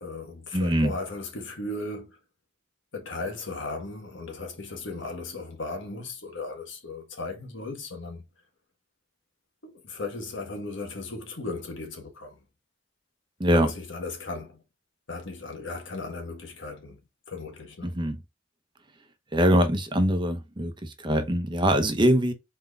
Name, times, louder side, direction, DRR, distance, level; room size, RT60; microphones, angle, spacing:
voice 1, 0.0-2.2 2.9-8.2 9.6-12.4 13.5-14.6 15.1-17.0 17.3-17.9, left 3 dB, 80° left, 1.5 m, -36 dB
voice 2, 0.5-0.9 13.4-13.7 17.8-18.2 19.3-22.3, equal, 25° right, 0.8 m, -23 dB
4.4 x 4.1 x 2.4 m
head